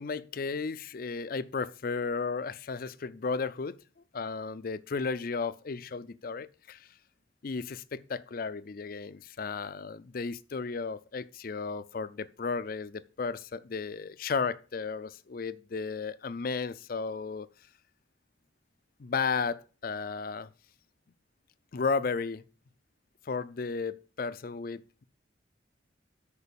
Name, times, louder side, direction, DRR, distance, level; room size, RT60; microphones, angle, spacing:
voice 1, 0.0-3.8 4.1-6.9 7.4-17.5 19.0-20.5 21.7-22.4 23.3-25.0, left 4 dB, 50° left, 0.4 m, -34 dB
6.6 x 4.8 x 6.9 m
head